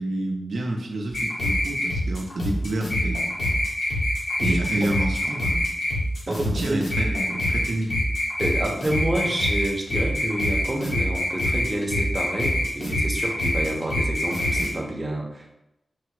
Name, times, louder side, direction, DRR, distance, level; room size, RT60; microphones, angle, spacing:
voice 1, 0.0-3.3 4.4-5.7 6.4-8.0, right 1 dB, 80° right, 1 dB, 0.7 m, -29 dB
sound 1, 1.1-14.7, left 1 dB, 80° left, 1.4 m, -25 dB
voice 2, 4.4-4.9 6.3-6.8 8.4-15.5, right 1 dB, 30° right, 0 dB, 0.8 m, -28 dB
4.7 x 2.0 x 4.6 m, 0.86 s
wide cardioid pair, 70°, 0 cm